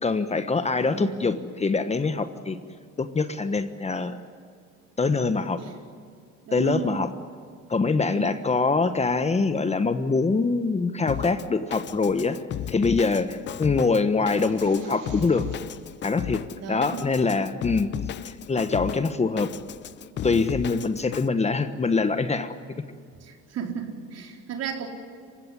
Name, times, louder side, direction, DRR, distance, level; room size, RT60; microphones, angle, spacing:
voice 1, 0.0-2.6 3.0-4.2 5.0-5.6 6.5-7.1 7.7-12.4 12.7-15.4 16.0-16.4 16.7-17.9 18.2-19.5 20.2-22.5, left 4 dB, 20° left, 10 dB, 1.3 m, -24 dB
voice 2, 0.7-1.3 5.6-5.8 6.5-7.1 8.0-8.5 16.6-17.1 23.2-24.9, right 6 dB, 60° right, 2 dB, 4.5 m, -35 dB
Drum kit, 11.1-21.3, left 11 dB, 40° left, 0.5 m, -35 dB
sound 1, 14.2-15.9, right 5 dB, 80° right, 7.5 m, -50 dB
27.5 x 16.0 x 9.8 m, 2.2 s
cardioid pair, 100°, 29 cm